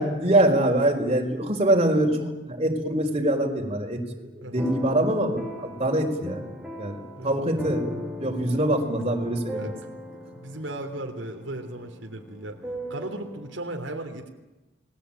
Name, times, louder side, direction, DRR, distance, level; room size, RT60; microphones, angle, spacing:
voice 1, 0.0-6.4 6.8-7.0 7.2-9.7, right 1 dB, 35° right, 2 dB, 4.8 m, -24 dB
voice 2, 4.4-4.7 7.2-7.4 9.5-9.8 10.1-12.6 12.9-14.3, right 1 dB, 85° right, 3 dB, 3.0 m, -36 dB
sound 1, 4.5-13.6, equal, 5° right, 5.0 m, -39 dB
30.0 x 20.5 x 9.0 m, 1.1 s
head